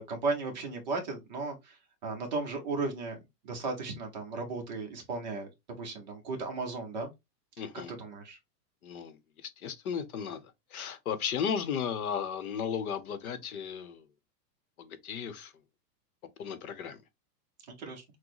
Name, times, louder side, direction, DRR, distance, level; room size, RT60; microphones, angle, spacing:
voice 1, 0.0-5.5 5.8-7.1 7.9-8.4 17.7-18.0, right 3 dB, 25° right, 0.7 m, -35 dB
voice 2, 7.6-7.9 8.8-10.4 10.7-14.0 14.8-15.5 16.4-17.0, left 7 dB, 60° left, 0.8 m, -35 dB
6.2 x 2.1 x 3.0 m
supercardioid pair, 180°, 50 cm